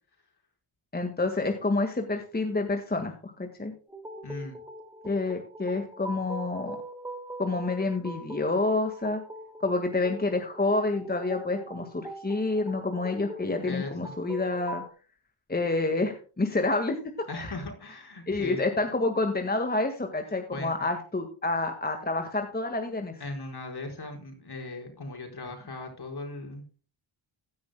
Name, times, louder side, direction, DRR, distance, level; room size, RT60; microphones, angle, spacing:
voice 1, 0.9-3.7 5.0-6.8 7.4-9.2 9.6-14.8 15.5-17.0 17.3-17.6 18.3-23.2, left 2 dB, 20° left, 5 dB, 1.7 m, -28 dB
sound 1, 3.9-14.9, right 1 dB, 5° right, 2.6 m, -42 dB
voice 2, 4.2-4.6 13.6-14.1 17.3-18.6 20.5-20.9 23.2-26.6, left 3 dB, 50° left, 2 dB, 4.9 m, -38 dB
16.0 x 10.0 x 2.2 m, 0.38 s
cardioid pair, 90°, 48 cm